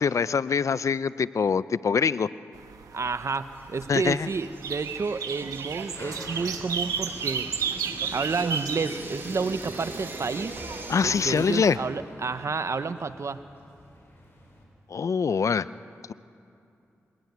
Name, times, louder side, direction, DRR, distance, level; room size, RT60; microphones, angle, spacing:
voice 1, 0.0-2.3 3.9-4.3 10.9-11.8 14.9-15.7, left 6 dB, 65° left, 17 dB, 0.5 m, -24 dB
sound 1, 2.5-11.7, right 6 dB, 90° right, 1.1 m, -35 dB
voice 2, 2.9-7.5 8.1-10.6 11.0-13.4, right 4 dB, 55° right, 12 dB, 0.9 m, -30 dB
sound 2, 3.6-11.3, right 2 dB, 40° right, 5.1 m, -42 dB
sound 3, 4.4-14.6, left 1 dB, 45° left, 7.9 m, -47 dB
25.5 x 17.5 x 9.4 m, 2.6 s
cardioid pair, 45°, 6 cm